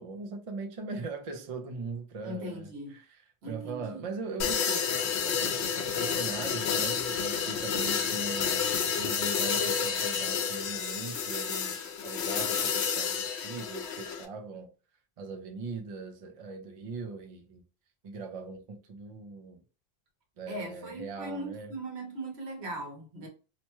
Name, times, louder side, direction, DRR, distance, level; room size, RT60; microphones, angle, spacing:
voice 1, 0.0-8.6 9.0-14.7 15.2-17.6 18.0-19.6 20.4-21.7, right 4 dB, 50° right, 0.4 m, -40 dB
voice 2, 2.2-3.0 3.4-4.0 20.5-23.3, right 1 dB, 75° right, 1.2 m, -39 dB
sound 1, 4.4-14.2, left 7 dB, 80° left, 0.9 m, -30 dB
2.9 x 2.2 x 2.9 m
omnidirectional pair, 1.1 m